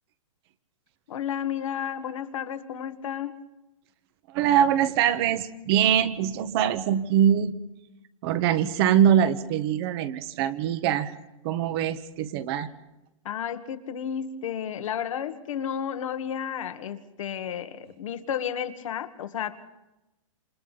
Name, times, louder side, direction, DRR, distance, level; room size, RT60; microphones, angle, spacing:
voice 1, 1.1-3.3 13.3-19.6, left 9 dB, 70° left, 9 dB, 1.7 m, -32 dB
voice 2, 4.3-7.5 8.2-11.1 11.4-12.7, right 9 dB, 50° right, 11 dB, 1.4 m, -23 dB
28.0 x 26.5 x 4.1 m, 0.95 s
hypercardioid pair, 130°, 17 cm